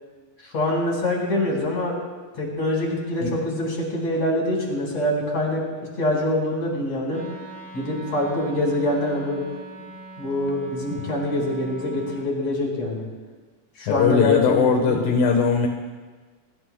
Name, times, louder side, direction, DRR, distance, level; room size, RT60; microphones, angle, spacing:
voice 1, 0.4-2.0 2.3-5.6 6.0-7.2 7.7-9.4 10.2-13.1 13.8-15.2, left 1 dB, 50° left, -2 dB, 5.7 m, -25 dB
Wind instrument woodwind instrument, 7.1-12.3, right 2 dB, 5° right, 1.4 m, -41 dB
voice 2, 13.9-15.7, left 6 dB, 85° left, 3 dB, 2.8 m, -19 dB
25.5 x 25.0 x 2.2 m, 1.4 s
omnidirectional pair, 3.8 m